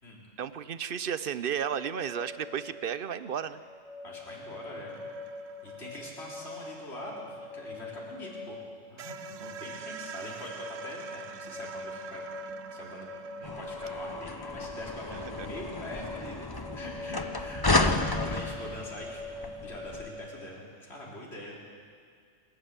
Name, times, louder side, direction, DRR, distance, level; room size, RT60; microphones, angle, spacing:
voice 1, 0.4-3.6 9.4-9.5 15.4-15.5, right 8 dB, 50° right, 14 dB, 0.8 m, -33 dB
sound 1, 1.7-20.4, left 2 dB, ahead, 6.8 m, -44 dB
voice 2, 4.0-5.0 5.6-12.2 12.7-13.1 13.4-21.6, left 1 dB, 55° left, -4 dB, 4.0 m, -44 dB
sound 2, 4.9-8.3 8.6-8.7 9.0-15.7, right 8 dB, 85° right, 1.1 m, -47 dB
sound 3, 13.4-20.1, left 2 dB, 20° left, 0.8 m, -32 dB
27.0 x 13.0 x 8.1 m, 2.1 s
omnidirectional pair, 1.3 m